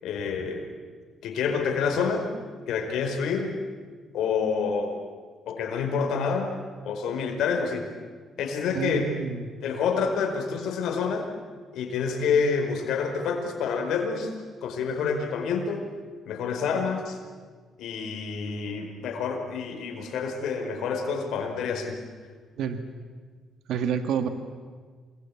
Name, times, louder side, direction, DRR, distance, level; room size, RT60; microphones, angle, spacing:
voice 1, 0.0-0.7 1.2-2.3 2.7-3.5 4.1-5.0 5.5-6.5 6.8-7.9 8.4-9.1 9.6-11.3 11.7-14.3 14.6-15.9 16.3-17.2 17.8-22.0, left 5 dB, 80° left, 4 dB, 4.8 m, -28 dB
voice 2, 8.7-9.5 22.6-22.8 23.7-24.3, right 7 dB, 80° right, 8 dB, 1.8 m, -28 dB
27.5 x 21.5 x 8.7 m, 1.6 s
cardioid pair, 90°, 0 cm